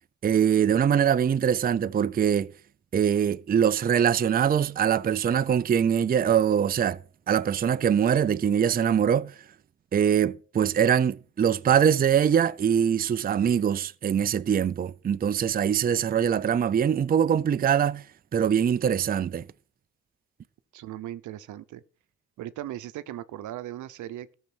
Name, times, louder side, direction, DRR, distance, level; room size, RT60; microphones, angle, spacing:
voice 1, 0.2-2.5 2.9-7.0 7.3-9.3 9.9-18.0 18.3-19.5, right 8 dB, 30° right, 0.5 m, -23 dB
voice 2, 20.7-21.8 22.4-24.3, right 13 dB, 75° right, 0.8 m, -38 dB
13.5 x 6.6 x 6.1 m
cardioid pair, 90°, 30 cm